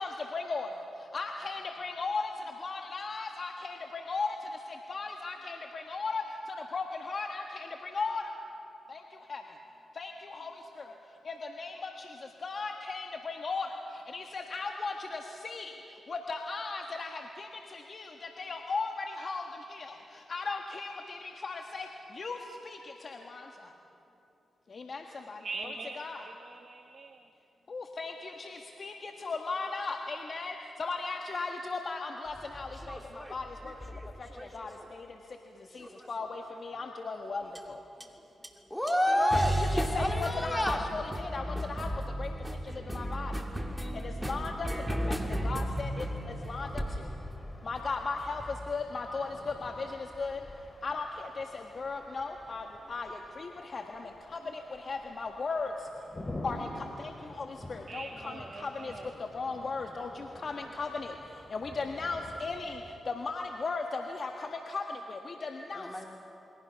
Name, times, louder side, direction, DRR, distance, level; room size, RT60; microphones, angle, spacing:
voice 1, 0.0-2.3 2.6-8.3 8.9-9.6 9.9-10.9 11.2-23.7 24.7-25.7 26.0-26.3 27.7-37.8 39.2-43.4 43.9-47.1 47.6-50.4 50.8-55.9 56.4-66.1, left 4 dB, 55° left, 3 dB, 1.5 m, -37 dB
voice 2, 25.4-27.3 57.9-59.1, right 3 dB, 55° right, 6 dB, 1.2 m, -43 dB
sound 1, 32.3-34.9 35.8-36.4 37.5-37.7 38.0-38.1 38.4-38.5 38.9-48.6, equal, 10° right, 2.6 m, -35 dB
voice 3, 38.7-39.5 40.0-40.9 65.7-66.1, equal, 10° left, 3 dB, 2.8 m, -28 dB
sound 2, 44.9-62.9, left 1 dB, 25° left, 3.3 m, -48 dB
28.5 x 21.5 x 5.9 m, 2.9 s
supercardioid pair, 50°, 0 cm